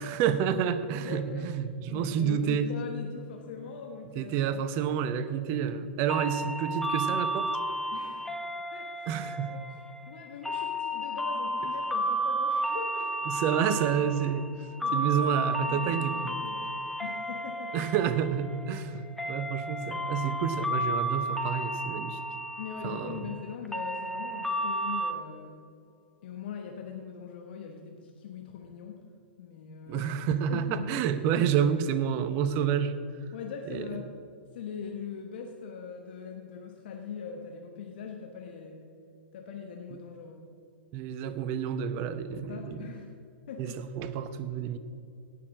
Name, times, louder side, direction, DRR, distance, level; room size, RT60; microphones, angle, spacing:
voice 1, 0.0-2.7 4.2-7.5 9.1-9.5 13.3-14.4 14.9-16.1 17.7-22.2 22.8-23.3 29.9-32.9 33.7-33.8 40.9-42.8 43.6-44.8, right 8 dB, 40° right, 12 dB, 0.9 m, -29 dB
voice 2, 1.0-1.5 1.9-5.0 7.9-8.4 8.7-9.6 10.1-13.3 14.8-16.7 17.0-17.9 19.0-19.1 22.6-25.5 26.2-29.0 29.4-30.1 30.5-30.9 33.3-34.1 34.5-38.8 39.3-40.4 42.5-43.1 43.5-43.8, left 6 dB, 55° left, 3 dB, 1.2 m, -41 dB
sound 1, 6.1-25.1, right 1 dB, 5° left, 1.0 m, -33 dB
17.0 x 6.7 x 6.1 m, 2.5 s
figure-of-eight pair, 105°, 6 cm